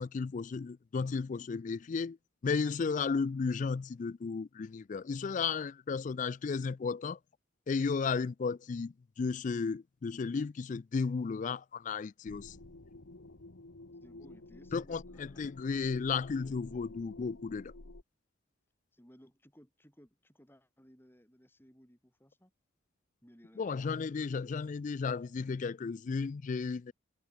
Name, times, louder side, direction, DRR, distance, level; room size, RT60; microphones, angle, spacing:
voice 1, 0.0-2.2 2.4-7.2 7.7-12.6 14.7-17.7 23.6-26.9, left 5 dB, 40° left, 0.3 m, -34 dB
sound 1, 12.2-18.0, left 2 dB, 70° left, 1.4 m, -51 dB
voice 2, 14.0-15.6 16.4-17.0 18.9-22.5 23.2-23.9, equal, 10° left, 4.3 m, -60 dB
head